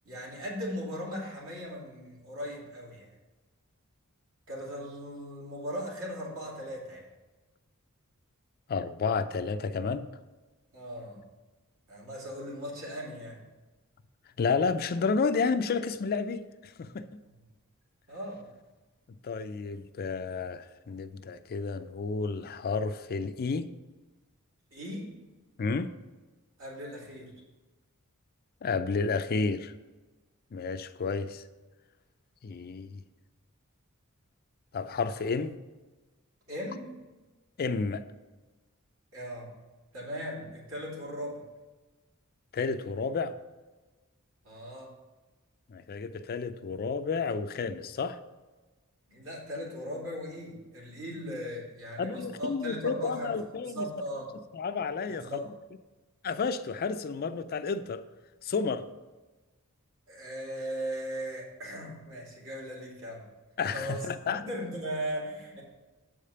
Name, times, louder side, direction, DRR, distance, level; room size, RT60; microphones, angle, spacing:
voice 1, 0.0-3.1 4.5-7.0 10.7-11.2 11.9-13.4 17.2-17.3 18.1-18.5 24.7-25.1 26.6-27.3 36.5-36.9 39.1-39.5 39.9-41.4 44.4-44.9 49.1-53.4 53.6-54.3 55.0-55.5 60.1-63.2 63.7-65.6, equal, 65° right, -4 dB, 2.7 m, -38 dB
voice 2, 8.7-10.1 14.4-17.1 19.2-23.7 25.6-25.9 28.6-29.7 30.5-31.4 32.4-33.0 34.7-35.6 37.6-38.0 42.5-43.3 45.7-48.2 52.0-53.8 54.5-55.3 56.2-58.0 58.4-58.8 63.6-64.4, left 4 dB, 45° left, 10 dB, 0.4 m, -31 dB
7.9 x 5.0 x 5.5 m, 1.2 s
head